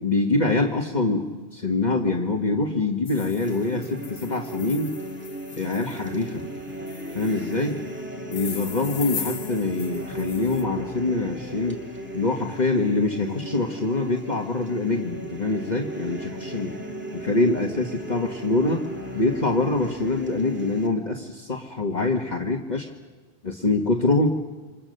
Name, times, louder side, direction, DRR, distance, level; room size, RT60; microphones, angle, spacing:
voice 1, 0.0-4.9 5.6-6.4 7.1-7.8 8.3-11.8 12.1-16.7 17.1-18.8 19.1-22.9 23.4-24.3, left 3 dB, 40° left, 1 dB, 1.7 m, -24 dB
sound 1, 3.1-6.2 6.9-7.7 8.3-10.6, left 6 dB, 75° left, 1.4 m, -39 dB
sound 2, 3.4-20.9, right 1 dB, 10° right, 2.6 m, -36 dB
28.5 x 25.5 x 6.7 m, 1.3 s
omnidirectional pair, 1.1 m